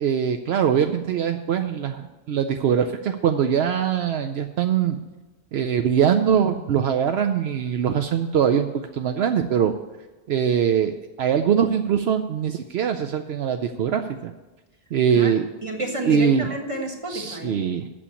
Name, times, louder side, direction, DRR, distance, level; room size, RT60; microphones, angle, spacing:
voice 1, 0.0-5.0 5.5-9.7 10.3-14.3 14.9-15.5 16.1-16.5 17.1-17.9, right 8 dB, 75° right, 7 dB, 0.8 m, -22 dB
voice 2, 15.6-17.5, right 1 dB, 30° right, 1 dB, 1.7 m, -30 dB
8.6 x 7.0 x 8.4 m, 1.1 s
omnidirectional pair, 1.1 m